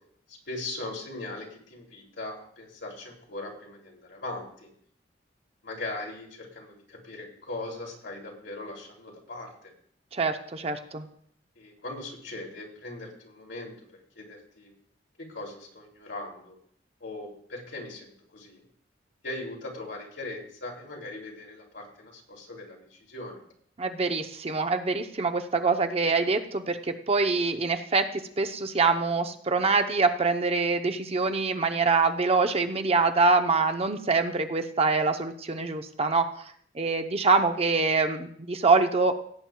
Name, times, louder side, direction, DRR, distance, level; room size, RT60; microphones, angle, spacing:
voice 1, 0.3-4.7 5.6-9.7 11.6-13.7 14.2-14.7 15.2-16.6 17.0-18.6 19.2-23.4, left 2 dB, 75° left, -1 dB, 2.8 m, -39 dB
voice 2, 10.1-11.1 23.8-36.3 36.7-39.1, right 4 dB, 35° right, 6 dB, 0.7 m, -25 dB
17.0 x 8.9 x 2.3 m, 0.62 s
head